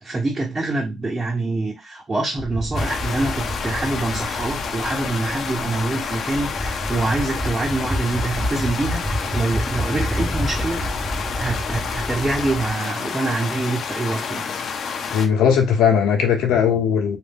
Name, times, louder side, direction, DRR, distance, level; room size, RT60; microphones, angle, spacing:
voice 1, 0.0-10.8 11.4-14.5, right 2 dB, 30° right, 1.0 m, -25 dB
sound 1, 2.4-12.7, equal, 10° right, 0.9 m, -29 dB
sound 2, 2.7-15.3, left 6 dB, 60° left, 0.5 m, -29 dB
voice 2, 15.1-17.2, left 7 dB, 90° left, 0.8 m, -18 dB
2.5 x 2.3 x 3.5 m
cardioid pair, 90°, 0 cm